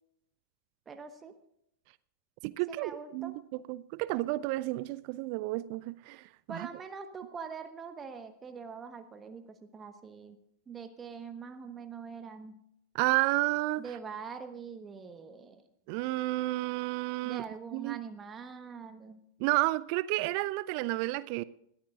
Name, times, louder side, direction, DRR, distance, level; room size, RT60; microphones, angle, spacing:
voice 1, 0.9-1.3 2.7-3.4 6.5-10.4 10.7-12.6 13.8-15.6 17.2-19.2, right 5 dB, 20° right, 1.3 m, -43 dB
voice 2, 2.4-3.4 3.7-6.7 12.9-13.8 15.9-17.4 17.7-18.0 19.4-21.4, right 19 dB, 45° right, 0.4 m, -31 dB
21.0 x 14.0 x 2.5 m
figure-of-eight pair, 90°, 0 cm